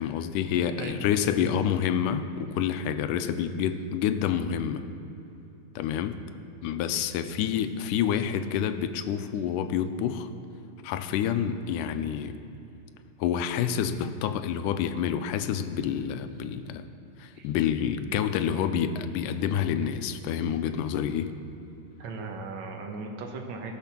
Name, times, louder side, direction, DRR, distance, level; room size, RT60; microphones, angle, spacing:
voice 1, 0.0-4.8 5.8-6.2 6.6-10.3 10.8-12.4 13.2-16.9 17.2-21.3, left 8 dB, 90° left, 10 dB, 2.2 m, -28 dB
voice 2, 22.0-23.8, right 3 dB, 65° right, 2 dB, 2.4 m, -37 dB
18.0 x 6.7 x 5.9 m, 2.8 s
omnidirectional pair, 3.6 m